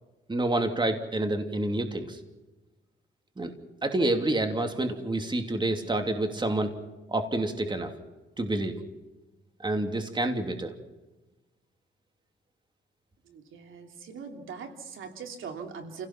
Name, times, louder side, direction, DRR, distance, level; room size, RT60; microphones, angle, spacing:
voice 1, 0.3-2.2 3.4-3.5 3.8-6.7 7.1-7.9 8.4-8.7 9.6-10.7, right 2 dB, 25° right, 5 dB, 2.8 m, -28 dB
voice 2, 13.2-16.1, right 6 dB, 85° right, 4 dB, 3.1 m, -41 dB
29.5 x 17.0 x 5.9 m, 1.1 s
cardioid pair, 90°, 20 cm